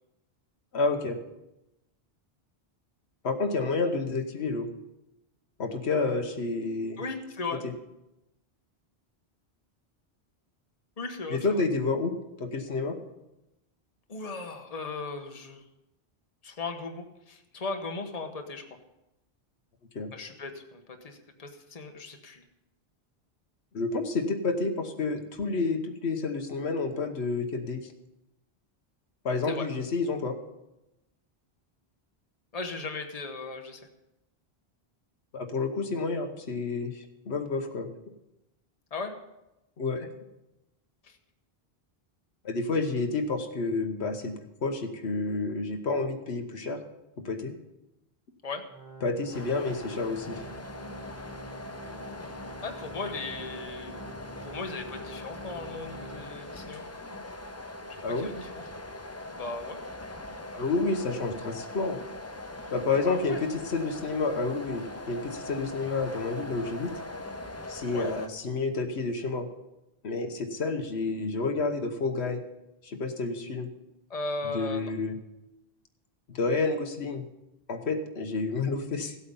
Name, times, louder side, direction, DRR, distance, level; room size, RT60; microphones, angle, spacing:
voice 1, 0.7-1.2 3.2-4.7 5.6-7.0 7.6-7.7 11.3-12.1 12.4-13.0 19.9-20.1 23.7-27.9 29.2-30.4 35.3-37.9 39.8-40.1 42.4-44.3 44.6-46.8 47.2-47.5 49.0-50.4 58.0-58.3 60.5-62.0 62.7-66.9 67.7-69.5 70.0-72.4 72.8-73.7 74.5-75.1 76.3-77.2 77.7-79.1, left 3 dB, 90° left, 5 dB, 1.4 m, -29 dB
voice 2, 7.0-7.6 11.0-11.6 14.1-15.6 16.4-18.7 20.1-22.4 29.5-29.7 32.5-33.8 38.9-39.1 41.0-41.2 48.4-48.6 52.6-53.9 54.4-56.8 58.1-58.5 59.3-59.8 63.1-63.4 67.9-68.1 74.1-74.9, left 3 dB, 40° left, 4 dB, 1.2 m, -37 dB
Organ, 48.7-56.7 57.1-57.2 57.9-58.0, right 1 dB, 15° right, 1.6 m, -47 dB
sound 1, 49.3-68.3, left 2 dB, 20° left, 0.6 m, -41 dB
15.5 x 8.4 x 5.4 m, 0.93 s
omnidirectional pair, 1.1 m